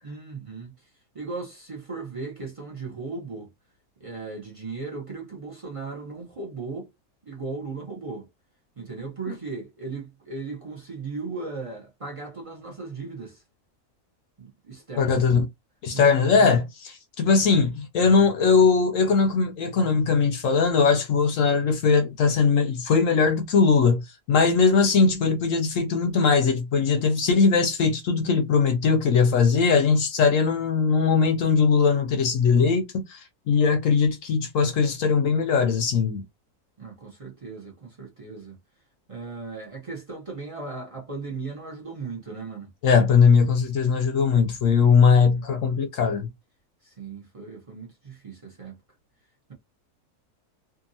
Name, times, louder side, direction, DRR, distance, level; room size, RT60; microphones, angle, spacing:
voice 1, 0.0-0.7 1.1-3.5 4.0-6.9 7.2-8.3 8.8-13.4 14.4-15.3 15.9-16.5 36.8-38.6 39.1-42.7 44.9-45.4 46.8-48.7, right 4 dB, 45° right, 0.4 m, -37 dB
voice 2, 15.0-15.5 15.8-36.2 42.8-46.3, left 5 dB, 70° left, 0.8 m, -20 dB
2.7 x 2.5 x 2.6 m
omnidirectional pair, 1.7 m